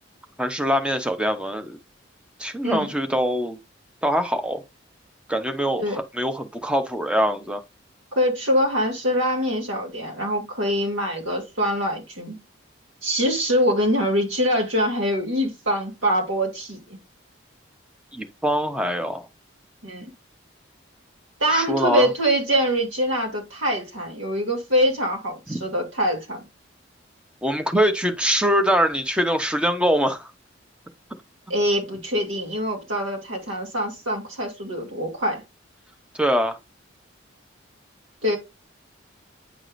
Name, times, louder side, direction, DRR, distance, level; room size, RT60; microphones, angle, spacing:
voice 1, 0.4-1.8 2.4-3.6 4.0-4.6 5.3-7.6 18.1-19.3 21.5-22.1 25.5-25.6 27.4-30.3 36.2-36.6, equal, 5° right, 0.7 m, -23 dB
voice 2, 8.1-12.4 13.0-16.8 19.8-20.1 21.4-26.4 31.5-35.4 38.2-38.4, equal, 90° right, 2.2 m, -24 dB
9.2 x 4.7 x 2.5 m
head